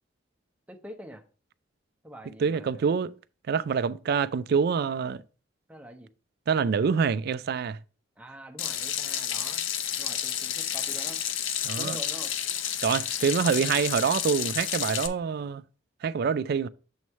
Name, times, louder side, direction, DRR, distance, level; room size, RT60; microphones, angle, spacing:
voice 1, 0.7-1.2 2.0-2.9 5.7-6.1 8.2-9.6 10.0-11.2 11.8-12.3, right 1 dB, 5° right, 0.7 m, -45 dB
voice 2, 2.4-3.1 3.5-5.2 6.5-7.8 11.6-12.0 12.8-15.6 16.0-16.7, right 6 dB, 55° right, 0.3 m, -26 dB
Water tap faucet / Sink (filling or washing), 8.6-15.1, left 10 dB, 75° left, 0.5 m, -31 dB
7.1 x 3.1 x 5.4 m
head